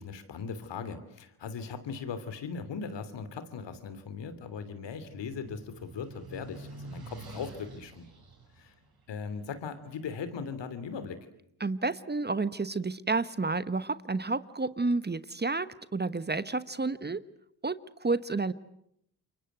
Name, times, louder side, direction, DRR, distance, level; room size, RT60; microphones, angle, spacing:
voice 1, 0.0-8.1 8.6-8.7 9.1-11.3, left 5 dB, 70° left, 11 dB, 3.1 m, -39 dB
sound 1, 3.8-10.1, right 3 dB, 55° right, 7.2 m, -48 dB
voice 2, 11.6-17.2 17.6-18.5, right 3 dB, 20° right, 15 dB, 1.2 m, -30 dB
28.5 x 23.5 x 8.0 m, 0.74 s
supercardioid pair, 50°, 44 cm